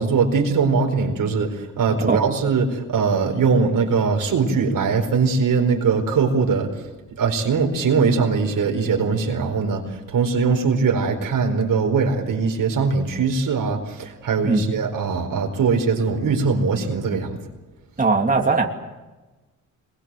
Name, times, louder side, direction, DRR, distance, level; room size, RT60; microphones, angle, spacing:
voice 1, 0.0-6.7 7.2-17.4, right 5 dB, 85° right, 3 dB, 4.7 m, -21 dB
voice 2, 18.0-18.7, right 4 dB, 25° right, 1 dB, 2.8 m, -19 dB
25.5 x 22.5 x 7.8 m, 1.2 s
cardioid pair, 105°, 32 cm